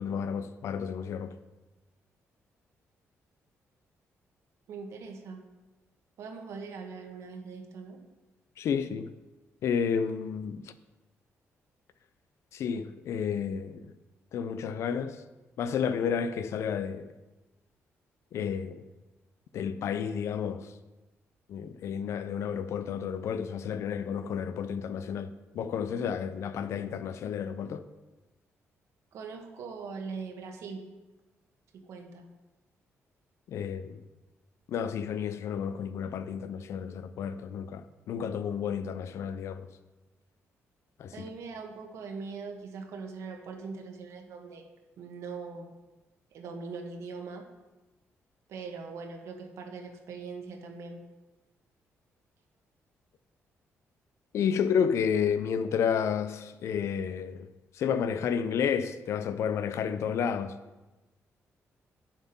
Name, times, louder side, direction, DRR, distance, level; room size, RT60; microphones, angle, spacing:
voice 1, 0.0-1.4 8.6-9.1 9.6-10.7 12.5-13.9 14.3-15.2 15.6-17.1 18.3-18.9 19.5-20.7 21.5-27.9 33.5-34.0 34.7-39.7 41.0-41.3 54.3-57.5 57.7-60.6, left 7 dB, 65° left, 0.6 m, -31 dB
voice 2, 4.7-5.4 6.2-8.0 29.1-30.8 31.7-32.2 41.1-44.7 45.0-45.7 46.3-47.5 48.5-51.0, right 4 dB, 75° right, 1.5 m, -41 dB
9.6 x 7.3 x 5.4 m
cardioid pair, 155°, 5 cm